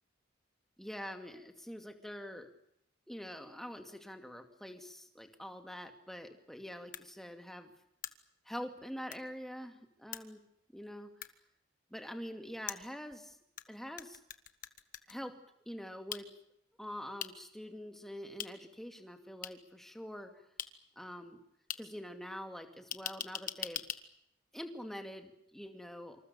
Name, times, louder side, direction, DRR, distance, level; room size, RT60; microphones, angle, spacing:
voice 1, 0.8-2.5 3.1-7.7 8.5-10.4 10.7-11.2 11.9-13.4 13.7-14.2 15.1-15.4 15.7-16.3 16.8-20.3 21.0-21.4 21.8-23.8 24.5-26.2, equal, ahead, 4 dB, 2.4 m, -45 dB
sound 1, 6.9-7.0 8.0-8.1 9.1-9.2 10.1-10.2 11.2-11.3 12.7-13.6 14.0-15.1 16.1-16.2 17.2-17.3 18.4-18.5 19.4-19.5 20.6-20.7 21.7-21.8 22.9-24.0, left 9 dB, 40° left, 1.4 m, -40 dB
27.5 x 26.5 x 6.9 m, 0.74 s
head